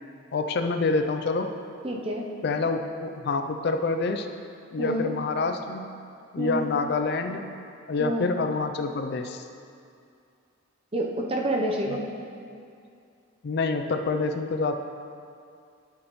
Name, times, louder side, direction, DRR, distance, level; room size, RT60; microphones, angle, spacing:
voice 1, 0.3-1.5 2.4-4.3 4.7-6.0 6.3-7.6 7.9-9.5 11.9-12.0 13.4-14.7, left 3 dB, 50° left, 7 dB, 0.4 m, -27 dB
voice 2, 1.8-2.3 4.8-5.1 6.4-6.7 8.0-8.3 10.9-12.0, right 1 dB, 25° right, 0 dB, 0.7 m, -28 dB
12.0 x 6.4 x 3.1 m, 2.4 s
head